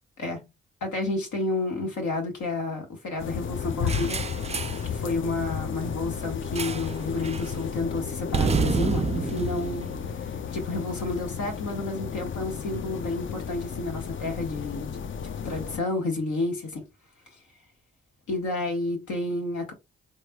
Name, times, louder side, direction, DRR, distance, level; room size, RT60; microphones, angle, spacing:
voice 1, 0.8-4.2 4.8-9.9 10.2-14.9 15.4-16.8 18.3-19.7, left 2 dB, 75° left, 1.5 m, -30 dB
sound 1, 3.2-15.8, left 7 dB, 40° left, 0.5 m, -33 dB
sound 2, 3.9-4.9 6.6-7.0 7.2-7.5 8.3-10.7, right 5 dB, 20° right, 0.4 m, -29 dB
3.3 x 3.1 x 2.3 m
hypercardioid pair, 40°, 30 cm